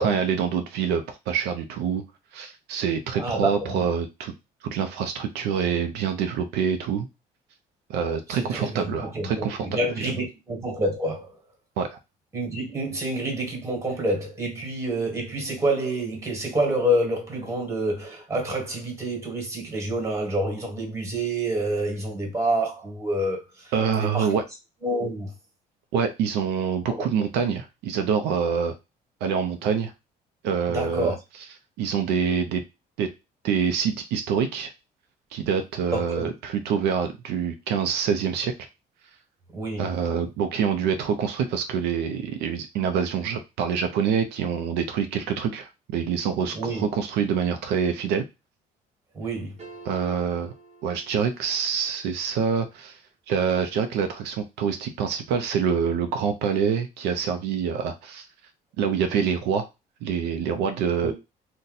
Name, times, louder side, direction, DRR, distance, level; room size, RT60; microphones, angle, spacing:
voice 1, 0.0-2.0 2.3-4.3 4.6-7.1 7.9-9.8 11.8-12.0 23.7-24.4 25.9-28.7 29.2-29.9 30.4-31.2 31.8-32.6 33.0-33.1 33.4-34.7 35.3-38.5 39.8-48.2 49.8-50.5 50.8-53.0 53.3-58.3 58.8-59.7 60.0-61.1, right 7 dB, 85° right, 0.5 m, -26 dB
voice 2, 3.2-3.8 8.3-11.3 12.3-23.7 24.0-24.3 24.8-25.3 26.8-27.1 30.7-31.2 35.9-36.3 39.5-39.9 46.5-46.8 49.1-49.6 61.0-61.1, right 1 dB, 15° right, 1.4 m, -28 dB
sound 1, 49.6-51.8, right 3 dB, 40° right, 0.9 m, -48 dB
2.7 x 2.2 x 3.9 m
cardioid pair, 110°, 17 cm